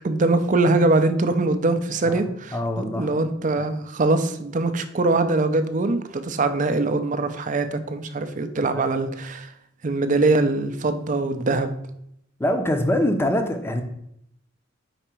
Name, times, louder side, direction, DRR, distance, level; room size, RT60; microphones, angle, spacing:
voice 1, 0.0-9.5 9.8-11.7, right 2 dB, 40° right, 9 dB, 0.5 m, -22 dB
voice 2, 2.5-3.1 3.6-3.7 8.6-8.8 12.4-13.8, left 1 dB, 10° left, 6 dB, 0.6 m, -24 dB
5.0 x 4.5 x 4.4 m, 0.76 s
head